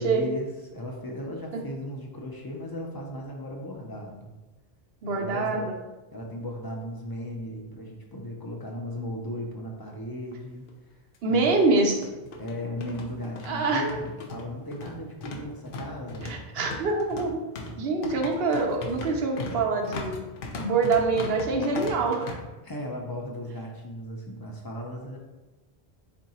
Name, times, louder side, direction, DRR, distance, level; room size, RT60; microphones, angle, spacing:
voice 1, 0.0-4.3 5.0-5.7 6.1-10.6 11.3-11.5 12.4-16.3 22.6-25.2, left 1 dB, 35° left, -1 dB, 0.3 m, -36 dB
voice 2, 5.0-5.7 11.2-12.1 13.4-13.8 16.3-17.4 17.8-20.2 20.6-22.4, right 3 dB, 70° right, 1 dB, 0.9 m, -25 dB
OM-FR-bangingfeet-on-floor, 10.3-10.4 10.7-10.8 11.6-22.3, left 3 dB, 65° left, 0.7 m, -38 dB
3.7 x 2.6 x 4.1 m, 1.1 s
omnidirectional pair, 1.1 m